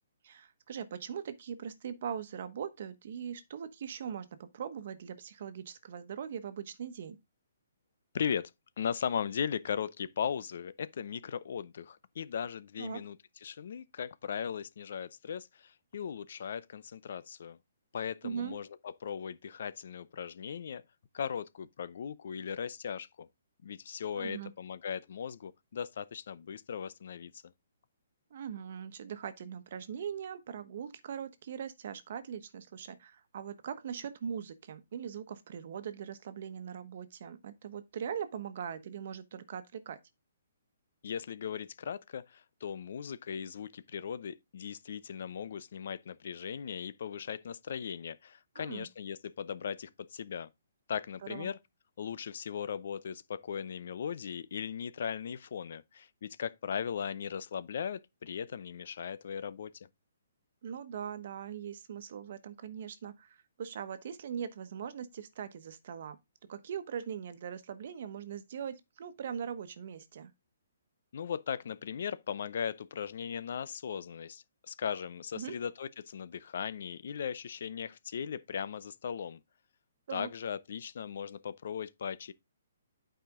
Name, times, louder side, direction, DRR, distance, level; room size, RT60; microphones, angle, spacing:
voice 1, 0.2-7.2 12.8-13.0 18.2-18.6 24.2-24.5 28.3-40.0 48.6-48.9 51.3-51.5 60.6-66.2 66.5-70.3 75.4-75.6 80.1-80.3, right 8 dB, 55° right, 1.1 m, -41 dB
voice 2, 8.1-8.5 8.8-17.6 17.9-20.8 21.1-23.3 23.6-27.5 41.0-50.5 50.9-51.6 52.0-59.9 71.1-79.4 80.1-82.3, left 7 dB, 60° left, 0.6 m, -38 dB
8.9 x 5.0 x 3.7 m
hypercardioid pair, 155°, 0 cm